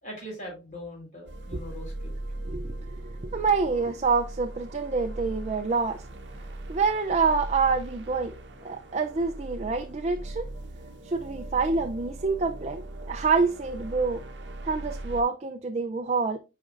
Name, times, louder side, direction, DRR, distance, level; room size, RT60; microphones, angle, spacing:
voice 1, 0.0-2.1, equal, 40° left, 4.1 m, -41 dB
sound 1, 1.3-15.2, right 1 dB, 60° right, 0.8 m, -39 dB
voice 2, 3.2-6.0 6.7-8.3 8.6-10.5 11.0-12.8 13.1-14.2 14.6-16.4, right 4 dB, 35° right, 0.4 m, -26 dB
8.4 x 5.0 x 2.5 m
head